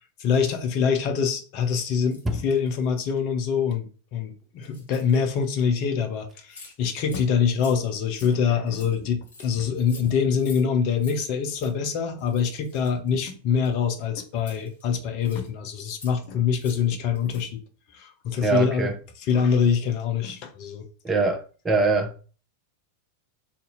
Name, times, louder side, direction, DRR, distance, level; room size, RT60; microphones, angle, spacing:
voice 1, 0.2-17.6 17.9-18.9 19.3-20.9, left 6 dB, 45° left, 0.6 m, -25 dB
sound 1, 1.6-2.9 3.4-3.6 4.6-5.6 6.0-6.1 6.3-6.8 7.0-7.3 7.5-10.6 10.9-11.2 11.4-11.7 12.2-13.9 14.3-15.5 15.8-16.2 16.5-16.9 17.1-17.5, left 3 dB, 65° left, 1.3 m, -48 dB
voice 2, 18.4-18.9 21.0-22.1, right 3 dB, 15° right, 0.6 m, -23 dB
2.7 x 2.5 x 4.0 m
figure-of-eight pair, 90°, 0 cm